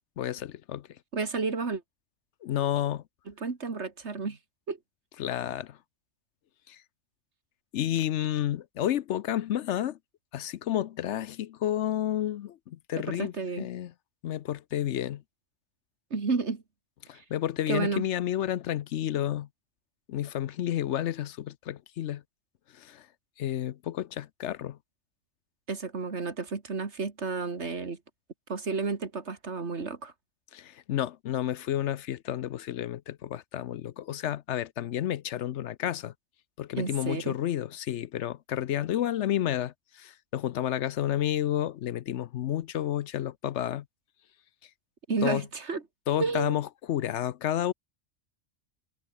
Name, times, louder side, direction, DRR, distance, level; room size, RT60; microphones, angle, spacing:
voice 1, 0.2-0.9 2.4-3.0 5.2-5.8 6.7-6.8 7.7-10.0 10.3-13.9 14.2-15.2 17.1-19.5 20.1-22.2 22.7-23.1 23.4-24.8 30.5-36.1 36.6-43.8 45.2-45.4 46.1-47.7, left 11 dB, 70° left, 0.9 m, -31 dB
voice 2, 1.1-1.8 3.3-4.4 4.7-4.8 13.1-13.7 16.1-16.6 17.1-17.2 17.7-18.0 25.7-28.0 28.5-30.1 36.8-37.4 45.1-45.8 46.2-46.6, right 4 dB, 60° right, 2.4 m, -31 dB
omnidirectional pair, 1.3 m